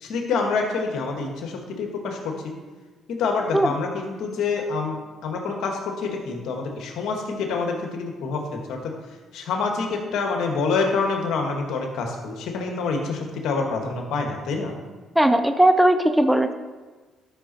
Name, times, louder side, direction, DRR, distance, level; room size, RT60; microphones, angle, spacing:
voice 1, 0.0-2.5 3.1-8.9 9.3-14.7, left 4 dB, 75° left, 2 dB, 1.8 m, -27 dB
voice 2, 15.2-16.5, right 1 dB, 5° right, 9 dB, 0.7 m, -18 dB
12.5 x 6.3 x 4.3 m, 1.3 s
supercardioid pair, 65°, 0 cm